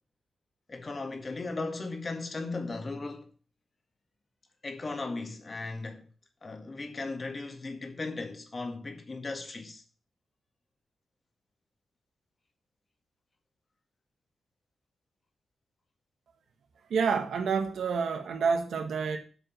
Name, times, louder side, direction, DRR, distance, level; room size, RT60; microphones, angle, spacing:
voice 1, 0.7-3.3 4.6-6.1 6.4-9.8, left 3 dB, 30° left, 1.8 m, -37 dB
voice 2, 16.9-19.2, right 5 dB, 85° right, 1.4 m, -28 dB
8.5 x 5.1 x 7.7 m
wide cardioid pair, 130°, 0 cm